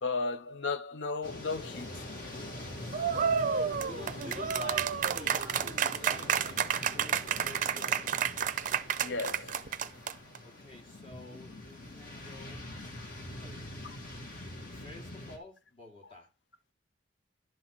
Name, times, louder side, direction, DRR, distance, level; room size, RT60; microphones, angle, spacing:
voice 1, 0.0-2.1 5.4-5.5 9.0-9.6 13.8-14.0, left 3 dB, 75° left, 0.7 m, -35 dB
sound 1, 1.2-15.4, left 1 dB, 50° left, 2.1 m, -44 dB
sound 2, 2.9-10.4, right 7 dB, 45° right, 0.5 m, -30 dB
voice 2, 3.8-8.4 10.4-12.7 13.3-13.6 14.7-16.3, left 2 dB, 30° left, 2.2 m, -49 dB
11.0 x 4.1 x 6.1 m
head